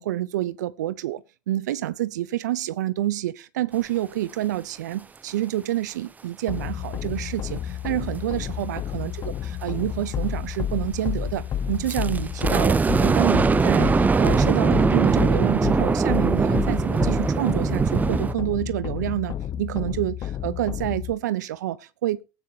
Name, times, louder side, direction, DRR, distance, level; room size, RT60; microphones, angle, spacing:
voice 1, 0.0-22.2, right 14 dB, 80° right, 0.7 m, -28 dB
sound 1, 6.5-21.1, left 9 dB, 40° left, 0.8 m, -30 dB
sound 2, 11.9-18.3, right 5 dB, 15° right, 0.5 m, -21 dB
19.0 x 9.0 x 2.8 m
hypercardioid pair, 90°, 9 cm